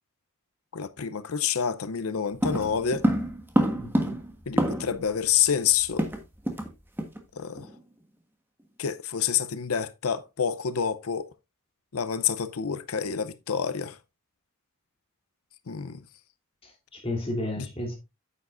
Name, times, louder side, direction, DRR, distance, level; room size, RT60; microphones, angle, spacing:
voice 1, 0.7-3.1 4.5-6.1 7.3-7.7 8.8-11.3 11.9-14.0 15.7-16.0 17.6-17.7, left 7 dB, 90° left, 0.7 m, -28 dB
sound 1, 2.4-5.1 5.3-5.4 5.7-6.7 7.0-7.2 7.6-7.8, equal, 10° right, 1.3 m, -27 dB
voice 2, 3.8-4.2 16.6-18.0, left 1 dB, 25° left, 3.3 m, -33 dB
9.3 x 8.2 x 2.5 m
head